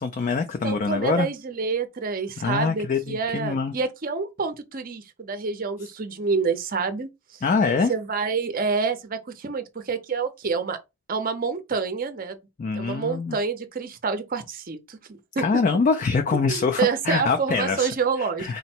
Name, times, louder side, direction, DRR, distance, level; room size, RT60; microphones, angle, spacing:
voice 1, 0.0-1.3 2.4-3.7 7.4-7.9 12.6-13.4 15.4-17.9 18.2-18.6, left 4 dB, 35° left, 0.3 m, -24 dB
voice 2, 0.6-7.1 7.9-10.8 11.1-12.4 12.8-15.0 15.4-15.6 16.5-18.6, right 5 dB, 40° right, 0.5 m, -27 dB
3.8 x 2.1 x 4.2 m
head